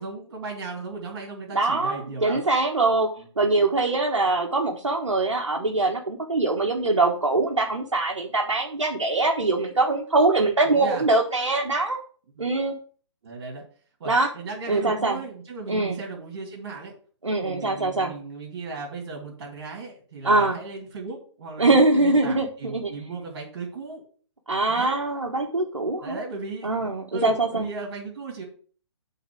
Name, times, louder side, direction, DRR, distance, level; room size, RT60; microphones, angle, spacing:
voice 1, 0.0-2.5 10.6-11.0 12.4-12.5 13.2-13.6 14.0-16.9 17.4-24.0 24.7-25.0 26.0-26.9 27.1-28.4, right 3 dB, 55° right, -1 dB, 2.9 m, -36 dB
voice 2, 1.5-3.1 3.4-12.0 12.4-12.7 14.1-14.3 14.7-15.2 15.7-16.0 17.2-18.1 20.2-20.6 21.6-22.9 24.5-26.2 26.6-27.7, right 2 dB, 90° right, 0 dB, 1.3 m, -23 dB
8.1 x 4.0 x 6.2 m, 0.43 s
figure-of-eight pair, 135°, 15 cm